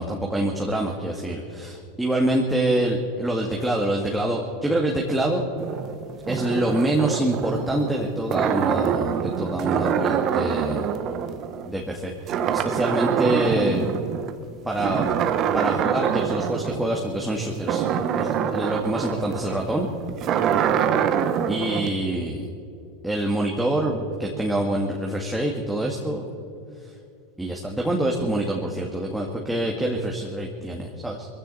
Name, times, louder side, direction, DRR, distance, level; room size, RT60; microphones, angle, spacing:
voice 1, 0.0-5.4 6.3-10.9 11.7-13.9 14.6-15.2 15.5-17.8 18.2-19.9 21.5-22.5 23.0-26.2 27.4-31.3, right 1 dB, 5° right, -1 dB, 1.9 m, -26 dB
sound 1, 5.6-12.0 12.3-14.3 14.7-21.9, right 8 dB, 40° right, 1.2 m, -25 dB
21.5 x 15.5 x 4.2 m, 2.7 s
hypercardioid pair, 100°, 0 cm